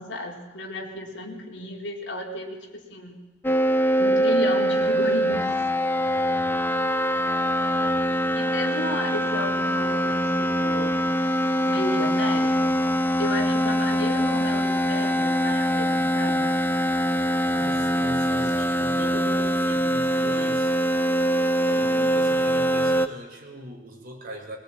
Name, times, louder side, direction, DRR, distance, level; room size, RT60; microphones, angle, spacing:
voice 1, 0.0-3.2 4.0-5.6 6.0-6.3 8.3-11.1 11.6-12.8 13.2-16.6 18.3-18.5, left 1 dB, 65° left, 1 dB, 4.1 m, -33 dB
sound 1, 3.4-23.1, equal, 10° left, 0.8 m, -23 dB
voice 2, 6.0-6.6 17.5-20.7 21.6-24.6, right 1 dB, 50° right, 1 dB, 4.7 m, -40 dB
22.5 x 22.0 x 9.0 m, 1.1 s
head